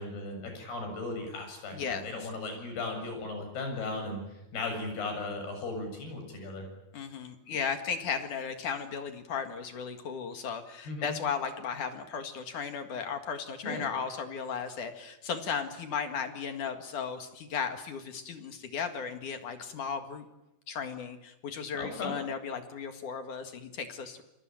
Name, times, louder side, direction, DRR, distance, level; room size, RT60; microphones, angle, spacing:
voice 1, 0.0-6.7 10.9-11.2 13.6-13.9 21.8-22.2, left 2 dB, 80° left, 5 dB, 9.4 m, -37 dB
voice 2, 1.7-2.3 6.9-20.2 20.7-24.2, left 6 dB, 60° left, 7 dB, 3.1 m, -35 dB
29.0 x 22.5 x 9.1 m, 0.89 s
omnidirectional pair, 4.5 m